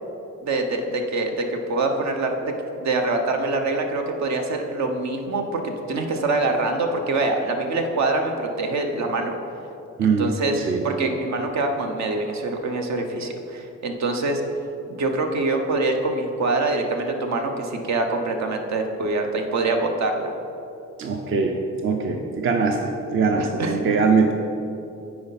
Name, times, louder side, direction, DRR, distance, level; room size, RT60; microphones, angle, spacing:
voice 1, 0.4-2.5 2.8-9.3 10.0-10.6 10.8-14.4 14.9-20.3 23.6-23.8, right 2 dB, 65° right, 4 dB, 0.9 m, -24 dB
voice 2, 21.0-21.5 21.8-24.3, right 5 dB, 45° right, 3 dB, 0.6 m, -21 dB
9.4 x 4.4 x 4.1 m, 2.9 s
cardioid pair, 90°, 30 cm